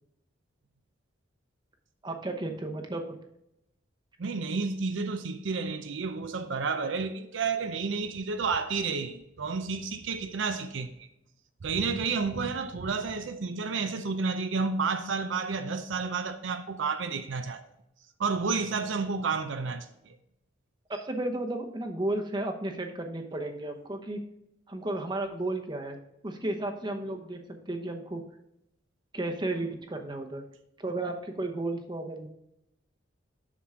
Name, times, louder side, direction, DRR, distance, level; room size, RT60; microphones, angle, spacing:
voice 1, 2.0-3.2 20.9-24.2 24.7-26.0 26.2-28.2 29.1-30.4 30.8-32.3, right 2 dB, 20° right, 0.8 m, -33 dB
voice 2, 4.2-11.1 11.6-17.6 18.2-20.2, right 4 dB, 70° right, 0.5 m, -31 dB
7.4 x 6.1 x 3.7 m
head